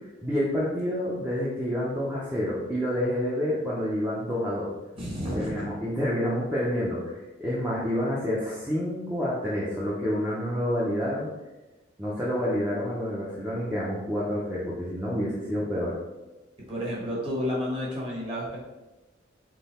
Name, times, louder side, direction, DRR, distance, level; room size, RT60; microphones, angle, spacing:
voice 1, 0.2-4.7 5.3-11.3 12.0-15.9, equal, 10° right, -8 dB, 0.6 m, -28 dB
voice 2, 4.9-5.6 16.7-18.6, equal, 25° right, -4 dB, 1.3 m, -31 dB
3.8 x 3.3 x 4.2 m, 1.1 s
head